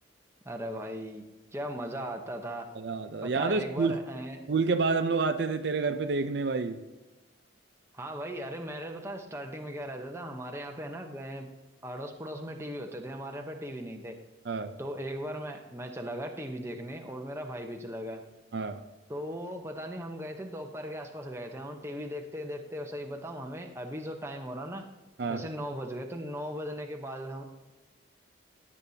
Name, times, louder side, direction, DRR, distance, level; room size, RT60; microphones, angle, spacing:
voice 1, 0.4-1.2 1.5-2.7 3.2-4.4 7.9-11.5 11.8-14.2 14.8-18.2 19.1-24.8 25.3-27.4, equal, 15° right, 3 dB, 0.9 m, -38 dB
voice 2, 2.8-3.9 4.5-6.8 14.5-14.8 18.5-18.8 25.2-25.5, right 4 dB, 55° right, 8 dB, 0.5 m, -28 dB
16.5 x 8.5 x 2.8 m, 1.1 s
head